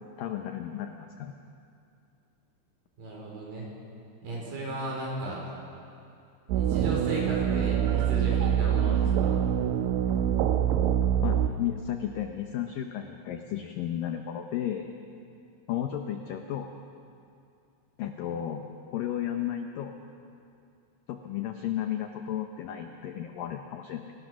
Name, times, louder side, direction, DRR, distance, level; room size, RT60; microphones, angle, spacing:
voice 1, 0.2-1.3 11.2-14.9 15.7-16.7 18.0-20.0 21.1-24.1, left 10 dB, 85° left, 5 dB, 1.9 m, -33 dB
voice 2, 3.0-3.7 4.2-5.4 6.5-9.4, right 1 dB, 50° right, -3 dB, 6.3 m, -35 dB
sound 1, 6.5-11.5, right 9 dB, 80° right, 3.1 m, -25 dB
29.0 x 18.0 x 6.3 m, 2.5 s
omnidirectional pair, 5.3 m